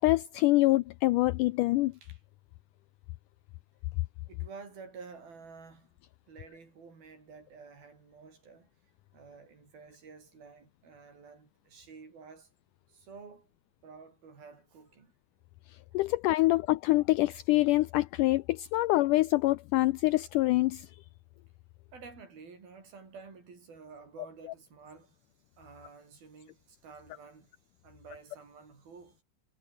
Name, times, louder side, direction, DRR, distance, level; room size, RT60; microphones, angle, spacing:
voice 1, 0.0-1.9 15.9-20.9, left 19 dB, 90° left, 1.8 m, -25 dB
voice 2, 4.3-5.9 6.3-8.7 9.1-12.5 12.9-13.5 13.8-15.1 15.9-16.0 16.4-16.5 21.9-25.3 25.6-27.5 27.8-29.2, right 5 dB, 75° right, 7.9 m, -51 dB
omnidirectional pair, 4.3 m